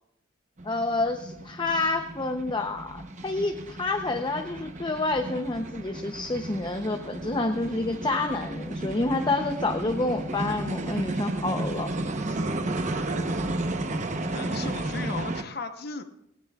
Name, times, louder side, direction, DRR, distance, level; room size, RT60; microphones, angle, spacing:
voice 1, 0.6-11.9 12.3-12.4, left 2 dB, 25° left, 5 dB, 0.7 m, -28 dB
sound 1, 0.6-15.4, right 2 dB, 40° right, 0.9 m, -33 dB
voice 2, 14.3-16.0, left 4 dB, 55° left, 7 dB, 0.9 m, -36 dB
18.0 x 18.0 x 2.4 m, 0.80 s
head